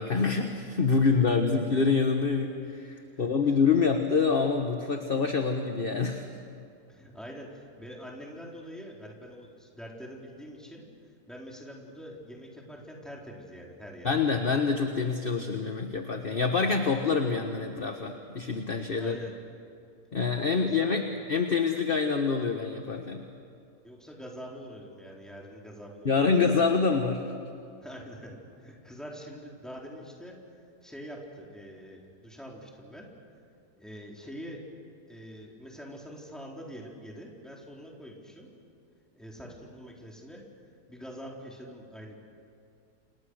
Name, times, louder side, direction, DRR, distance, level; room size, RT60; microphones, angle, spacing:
voice 1, 0.0-6.2 14.0-19.1 20.1-21.0 21.3-23.2 26.0-27.2, left 5 dB, 35° left, 4 dB, 1.5 m, -26 dB
voice 2, 6.9-10.9 11.3-14.1 18.9-19.3 20.5-21.0 23.8-26.6 27.8-30.4 30.8-33.1 33.8-34.6 35.1-38.5 39.1-40.4 40.9-42.2, equal, ahead, -2 dB, 4.2 m, -44 dB
29.0 x 28.0 x 6.6 m, 2.4 s
omnidirectional pair, 1.7 m